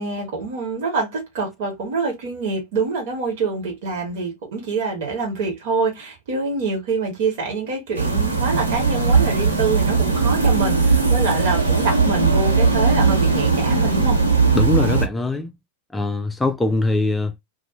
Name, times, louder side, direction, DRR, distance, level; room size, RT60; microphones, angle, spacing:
voice 1, 0.0-14.2, right 4 dB, 50° right, 1.5 m, -25 dB
sound 1, 7.9-15.0, right 4 dB, 75° right, 1.2 m, -18 dB
voice 2, 14.5-15.5 15.9-17.3, left 2 dB, 10° left, 0.4 m, -22 dB
2.6 x 2.6 x 2.7 m
figure-of-eight pair, 90°, 0 cm